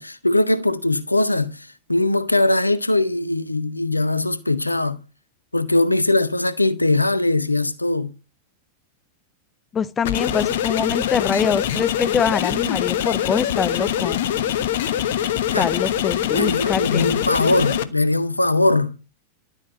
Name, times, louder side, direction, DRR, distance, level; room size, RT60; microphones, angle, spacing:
voice 1, 0.0-5.0 5.5-8.1 15.5-15.7 16.3-18.9, left 2 dB, 85° left, 1.0 m, -20 dB
voice 2, 9.7-14.2 15.5-17.1, left 7 dB, 20° left, 0.9 m, -24 dB
sound 1, 10.0-17.8, left 10 dB, 55° left, 1.1 m, -23 dB
12.0 x 8.9 x 7.2 m
figure-of-eight pair, 90°, 0 cm